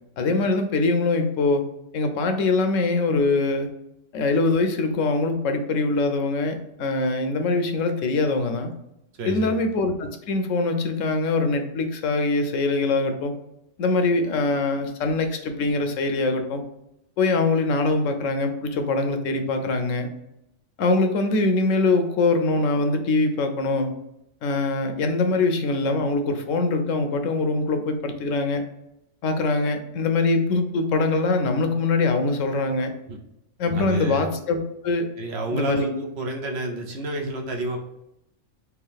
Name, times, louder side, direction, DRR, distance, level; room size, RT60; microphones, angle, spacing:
voice 1, 0.2-1.6 1.9-3.7 4.1-8.7 9.2-13.3 13.8-16.6 17.2-20.1 20.8-23.9 24.4-28.6 29.2-32.9 33.6-35.1 35.5-35.8, left 3 dB, 75° left, 7 dB, 1.0 m, -23 dB
voice 2, 9.2-9.6 33.1-33.2 33.7-34.3 35.2-37.8, right 2 dB, 60° right, 2 dB, 0.8 m, -29 dB
3.5 x 2.8 x 3.4 m, 0.84 s
omnidirectional pair, 1.3 m